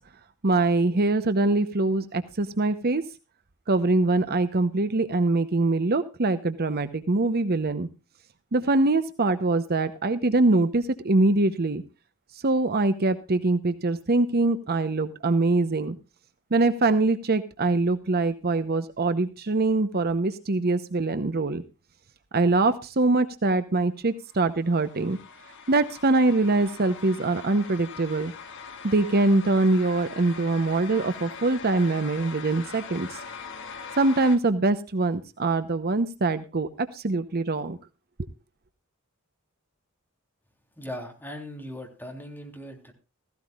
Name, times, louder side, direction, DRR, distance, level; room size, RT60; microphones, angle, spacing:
voice 1, 0.4-3.0 3.7-7.9 8.5-11.8 12.4-16.0 16.5-21.6 22.3-25.2 25.7-28.3 28.8-33.2 34.0-37.8, right 2 dB, 45° right, 11 dB, 0.8 m, -23 dB
sound 1, 24.3-34.4, left 5 dB, 60° left, 1.8 m, -42 dB
voice 2, 40.8-42.9, equal, 10° left, 2 dB, 3.4 m, -39 dB
16.5 x 15.5 x 2.4 m, 0.29 s
head